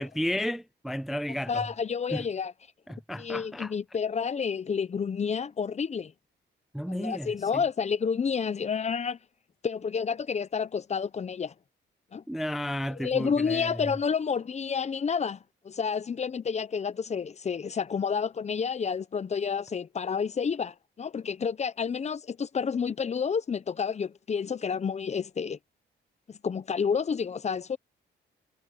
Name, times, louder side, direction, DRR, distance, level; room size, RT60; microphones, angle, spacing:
voice 1, 0.0-1.7 2.1-2.3 2.9-3.7 6.7-7.6 12.3-13.9, equal, ahead, 0.4 m, -33 dB
voice 2, 1.5-2.5 3.2-6.1 6.9-9.2 9.6-11.5 12.1-12.2 13.0-15.4 15.6-25.6 26.4-27.8, left 6 dB, 35° left, 0.8 m, -30 dB
cardioid pair, 90°, 20 cm